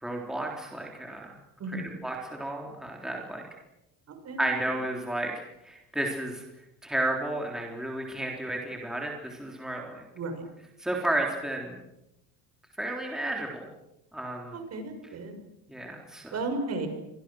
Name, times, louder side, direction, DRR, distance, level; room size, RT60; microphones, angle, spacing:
voice 1, 0.0-1.3 1.7-3.4 4.4-5.3 5.6-6.4 6.8-10.0 10.8-11.8 12.8-13.7 14.1-14.6 15.7-16.3, right 1 dB, ahead, 0 dB, 3.8 m, -32 dB
voice 2, 4.1-4.4 10.1-10.4 14.5-15.4 16.3-16.9, right 2 dB, 40° right, 7 dB, 6.1 m, -34 dB
30.0 x 25.0 x 6.4 m, 0.88 s
cardioid pair, 155°, 39 cm